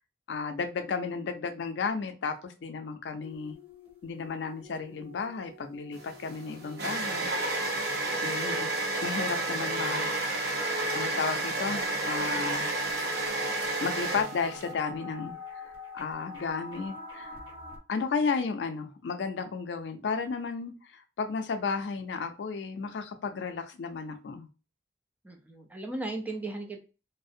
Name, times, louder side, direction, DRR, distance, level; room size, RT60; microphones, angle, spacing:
voice 1, 0.3-3.6 4.0-7.3 8.2-8.7 9.0-10.1 10.9-12.7 13.8-17.4 17.9-24.5, left 5 dB, 75° left, 8 dB, 0.4 m, -33 dB
sound 1, 3.2-17.8, equal, 30° right, 1.2 m, -44 dB
sound 2, 6.0-14.7, right 2 dB, 65° right, 0.7 m, -31 dB
voice 2, 25.2-26.8, right 2 dB, 10° right, 2 dB, 0.4 m, -36 dB
2.4 x 2.0 x 2.5 m, 0.33 s
head